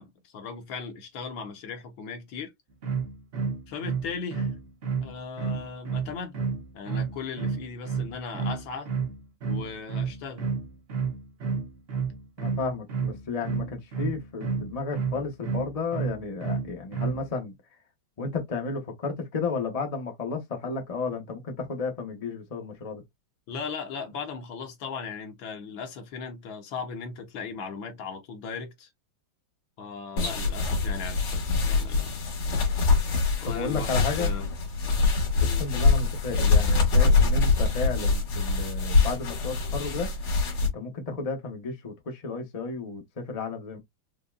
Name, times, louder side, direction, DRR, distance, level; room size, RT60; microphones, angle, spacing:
voice 1, 0.0-2.5 3.7-4.6 5.0-6.3 6.7-8.9 9.5-10.5 23.5-28.9 29.8-32.1 33.4-34.5 35.3-35.6, left 5 dB, 70° left, 1.6 m, -37 dB
sound 1, 2.8-17.3, right 5 dB, 60° right, 0.6 m, -30 dB
voice 2, 12.4-17.5 18.2-23.0 33.4-34.3 35.5-40.1 40.6-43.8, left 4 dB, 45° left, 0.5 m, -33 dB
sound 2, 30.2-40.7, left 4 dB, 90° left, 2.4 m, -24 dB
5.2 x 2.2 x 2.4 m
omnidirectional pair, 2.3 m